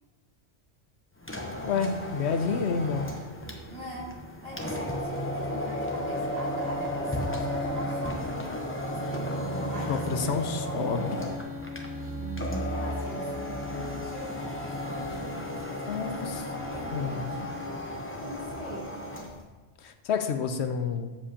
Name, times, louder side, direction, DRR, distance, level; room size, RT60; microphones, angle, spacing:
sound 1, 1.2-19.4, equal, 10° left, 0.9 m, -34 dB
voice 1, 1.6-3.1 9.9-11.2 15.9-16.3 16.9-17.3 19.8-21.1, left 5 dB, 80° left, 8 dB, 1.0 m, -29 dB
voice 2, 3.7-4.1 4.4-11.1 12.1-17.6 17.9-18.9, equal, 55° right, -6 dB, 3.0 m, -42 dB
sound 2, 10.8-18.0, left 6 dB, 15° right, 0.6 m, -43 dB
13.0 x 7.5 x 2.9 m, 1.3 s
omnidirectional pair, 1.1 m